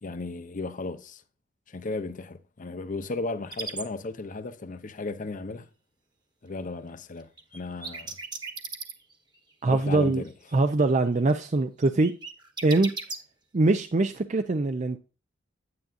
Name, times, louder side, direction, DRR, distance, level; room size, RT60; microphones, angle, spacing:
voice 1, 0.0-1.2 1.7-5.7 6.4-8.1 9.7-10.3, left 3 dB, 45° left, 0.7 m, -35 dB
sound 1, 3.5-3.8 7.4-9.4 9.7-10.5 10.8-11.3 11.8-13.2, right 4 dB, 20° right, 1.2 m, -36 dB
voice 2, 9.6-10.2 10.5-12.1 12.6-12.9 13.5-15.0, right 2 dB, 40° right, 0.5 m, -23 dB
9.8 x 9.1 x 2.5 m
head